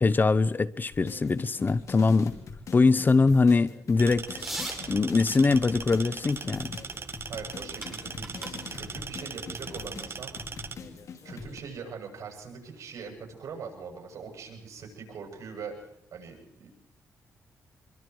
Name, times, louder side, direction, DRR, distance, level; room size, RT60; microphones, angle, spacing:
voice 1, 0.0-2.3 2.7-4.4 4.9-6.7, left 4 dB, 35° left, 0.8 m, -23 dB
sound 1, 0.9-11.6, left 5 dB, 65° left, 2.9 m, -44 dB
sound 2, 4.0-10.7, right 5 dB, 45° right, 1.2 m, -40 dB
sound 3, 4.3-11.0, right 1 dB, 5° right, 7.6 m, -44 dB
voice 2, 7.3-10.3 11.2-16.7, right 5 dB, 70° right, 7.6 m, -42 dB
26.0 x 23.0 x 4.8 m
cardioid pair, 75°, 6 cm